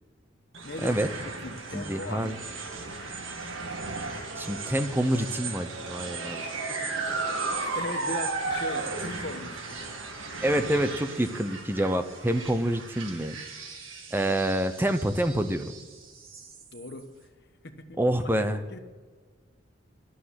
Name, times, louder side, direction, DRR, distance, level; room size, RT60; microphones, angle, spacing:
sound 1, 0.5-17.0, right 3 dB, 90° right, 2.1 m, -35 dB
voice 1, 0.6-1.0 1.4-2.5 6.7-7.2 7.6-9.8 16.7-17.1 17.6-18.8, left 2 dB, 55° left, 7 dB, 1.2 m, -39 dB
voice 2, 1.7-2.4 4.4-6.4 10.4-13.3 14.1-15.7 18.0-18.6, right 1 dB, 10° right, 9 dB, 0.8 m, -27 dB
12.0 x 9.0 x 9.8 m, 1.4 s
head